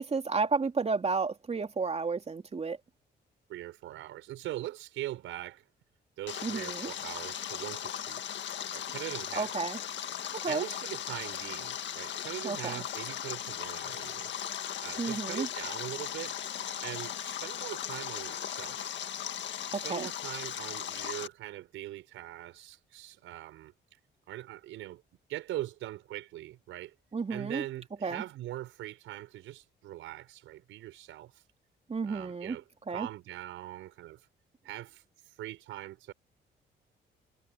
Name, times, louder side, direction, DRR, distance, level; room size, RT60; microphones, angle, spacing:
voice 1, 0.0-2.8 6.4-6.9 9.3-9.8 10.4-10.7 12.4-12.8 15.0-15.5 19.7-20.1 27.1-27.6 28.0-28.2 31.9-32.6 32.9-33.1, right 4 dB, 30° right, 3.1 m, -32 dB
voice 2, 3.5-5.7 6.2-8.2 8.7-9.5 10.5-14.5 14.8-16.3 16.8-18.9 19.7-23.7 24.3-25.0 25.3-26.9 27.3-31.4 32.0-34.3 34.6-36.1, right 14 dB, 90° right, 5.1 m, -41 dB
Stream, 6.3-21.3, left 10 dB, 65° left, 1.8 m, -38 dB
cardioid pair, 90°, 20 cm